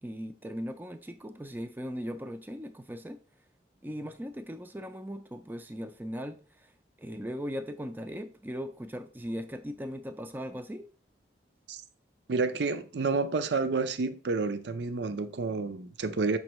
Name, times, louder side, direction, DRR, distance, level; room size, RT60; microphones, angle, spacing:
voice 1, 0.0-3.2 3.8-6.7 7.0-10.9, equal, 10° right, 0.4 m, -38 dB
voice 2, 12.3-16.4, right 4 dB, 70° right, 0.5 m, -29 dB
6.9 x 5.3 x 3.0 m
head